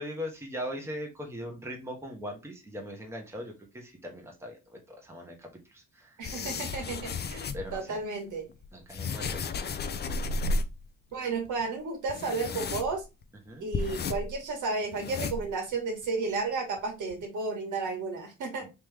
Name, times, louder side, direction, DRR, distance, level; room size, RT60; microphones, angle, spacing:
voice 1, 0.0-6.2 7.5-8.0 8.7-9.4 13.5-13.7, equal, 10° right, 1 dB, 1.0 m, -40 dB
sound 1, 6.2-7.8 8.5-10.9 11.1-11.2 11.4-11.6 12.1-13.2 13.7-14.5 14.8-15.7 16.0-16.1 16.8-16.9 17.1-17.2, left 3 dB, 35° left, 0.4 m, -33 dB
voice 2, 6.2-8.5 11.1-13.0 13.6-18.7, right 4 dB, 80° right, 2 dB, 1.6 m, -33 dB
3.2 x 3.0 x 3.4 m, 0.26 s
cardioid pair, 90°, 30 cm